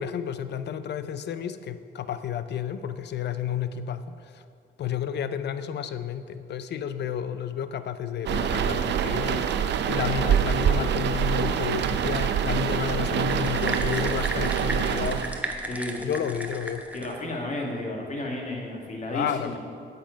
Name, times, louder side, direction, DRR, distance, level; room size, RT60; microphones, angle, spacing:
voice 1, 0.0-4.4 4.8-15.5 16.0-16.8 19.1-19.6, left 8 dB, 60° left, 12 dB, 0.6 m, -31 dB
sound 1, 8.3-15.4, right 8 dB, 60° right, 0.6 m, -25 dB
sound 2, 13.2-17.2, right 1 dB, 5° right, 1.0 m, -34 dB
voice 2, 15.6-16.0 16.9-19.6, left 1 dB, 40° left, 0 dB, 2.0 m, -32 dB
8.6 x 8.0 x 5.1 m, 2.4 s
cardioid pair, 90°, 20 cm